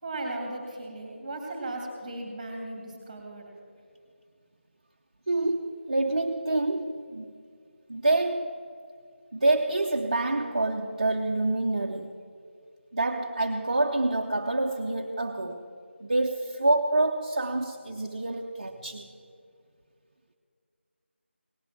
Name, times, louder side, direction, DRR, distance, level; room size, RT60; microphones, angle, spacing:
voice 1, 0.0-3.5, right 2 dB, 10° right, 1 dB, 2.3 m, -36 dB
voice 2, 5.3-7.4 7.9-8.7 9.3-12.1 12.9-15.7 16.0-19.1, right 2 dB, 35° right, 2 dB, 0.6 m, -27 dB
17.5 x 8.0 x 6.0 m, 2.3 s
figure-of-eight pair, 165°, 7 cm